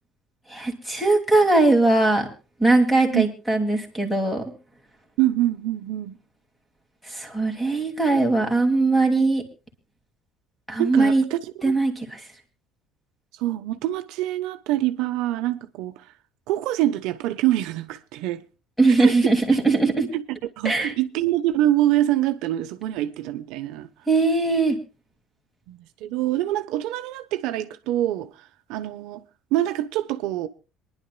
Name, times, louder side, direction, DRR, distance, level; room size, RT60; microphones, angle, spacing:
voice 1, 0.5-2.3 2.6-4.5 7.0-9.4 10.7-11.2 11.6-12.2 18.8-20.1 20.6-20.9 24.1-24.8, right 3 dB, 5° left, 2.3 m, -20 dB
voice 2, 5.2-6.2 10.8-11.4 11.6-11.7 13.4-16.0 16.5-18.4 19.0-19.3 20.1-20.2 20.6-23.9 25.7-29.2 29.5-30.5, right 14 dB, 70° right, 0.9 m, -25 dB
26.5 x 10.5 x 2.3 m
cardioid pair, 165°, 0 cm